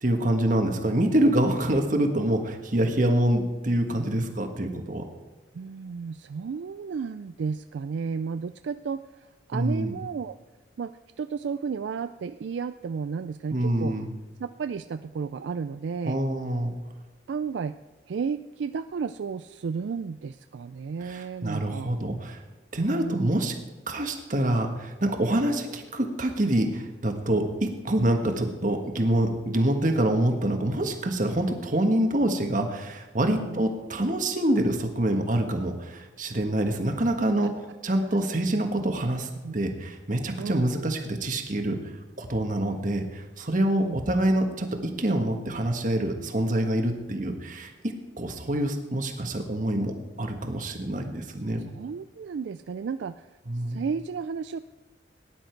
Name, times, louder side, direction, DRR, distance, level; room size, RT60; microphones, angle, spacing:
voice 1, 0.0-5.0 9.5-9.9 13.5-14.1 16.0-16.7 21.0-22.4 22.7-23.5 23.9-37.5 37.8-41.8 42.2-51.6 53.5-53.8, right 1 dB, 45° right, 4 dB, 1.5 m, -26 dB
voice 2, 5.5-9.0 9.5-10.4 10.8-14.0 14.4-16.2 17.3-17.8 18.1-21.9 22.8-23.3 33.2-33.6 37.4-37.5 38.0-38.2 38.6-38.7 39.4-39.5 40.4-40.6 43.5-44.0 51.7-53.3 53.5-54.6, right 5 dB, 70° right, 11 dB, 0.3 m, -33 dB
18.0 x 10.5 x 4.6 m, 1.2 s
head